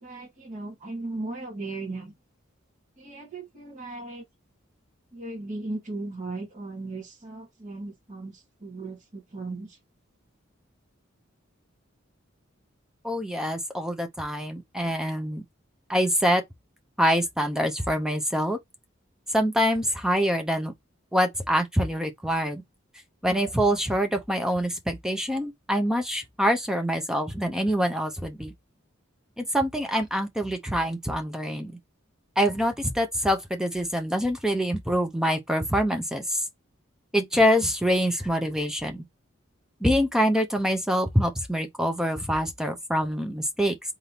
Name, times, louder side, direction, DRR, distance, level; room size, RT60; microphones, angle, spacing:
voice 1, 0.0-2.1 3.0-4.2 5.1-9.8, right 2 dB, 40° right, 2.3 m, -37 dB
voice 2, 13.0-15.4 15.9-16.4 17.0-18.6 19.3-20.7 21.1-22.6 23.2-28.5 29.4-31.7 32.4-36.4 37.1-39.0 39.8-43.8, equal, 5° right, 0.7 m, -25 dB
3.9 x 3.6 x 2.9 m
head